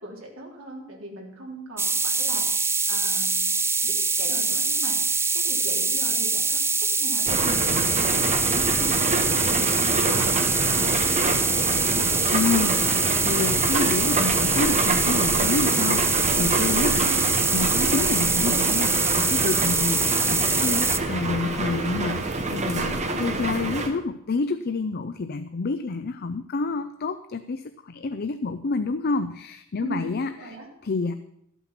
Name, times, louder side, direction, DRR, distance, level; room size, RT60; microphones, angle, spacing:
voice 1, 0.0-3.5 3.8-3.9 4.2-6.6 7.0-7.8 8.1-9.5 9.8-11.5 17.0-17.2 22.8-23.5 29.8-30.7, right 1 dB, 80° right, -2 dB, 3.4 m, -39 dB
sound 1, 1.8-21.0, right 4 dB, 10° right, 0.5 m, -24 dB
sound 2, 7.3-23.9, right 2 dB, 35° right, 1.2 m, -27 dB
voice 2, 12.3-17.0 17.5-30.6 30.8-31.1, left 3 dB, 50° left, 10 dB, 0.5 m, -28 dB
13.0 x 8.3 x 5.8 m, 0.74 s
head